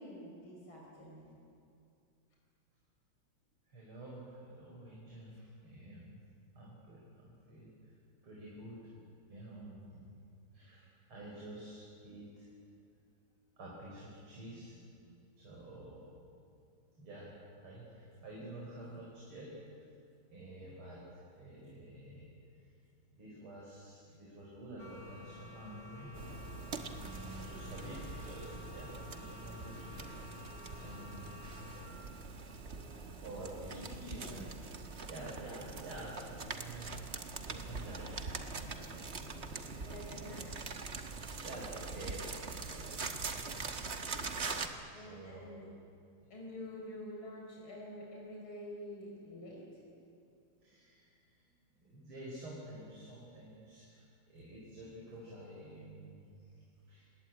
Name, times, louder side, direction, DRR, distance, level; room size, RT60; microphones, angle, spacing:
voice 1, 0.0-1.4 33.7-34.4 39.8-40.6 44.9-45.7 46.3-49.6, left 1 dB, 70° left, -3 dB, 5.5 m, -47 dB
voice 2, 3.7-6.2 6.6-7.9 8.2-10.1 10.5-12.5 13.6-16.1 17.0-17.3 17.6-19.9 20.2-22.3 22.6-22.7 23.1-26.1 26.9-31.6 33.2-34.4 35.0-38.1 38.4-40.4 41.4-45.5 50.6-51.5 51.8-56.4 56.9-57.0, right 1 dB, 85° right, -4 dB, 5.7 m, -50 dB
sound 1, 24.8-31.9, left 3 dB, 30° left, 4.1 m, -51 dB
sound 2, 26.1-44.7, right 4 dB, 35° right, 1.5 m, -43 dB
27.0 x 20.0 x 9.2 m, 2.5 s
omnidirectional pair, 2.3 m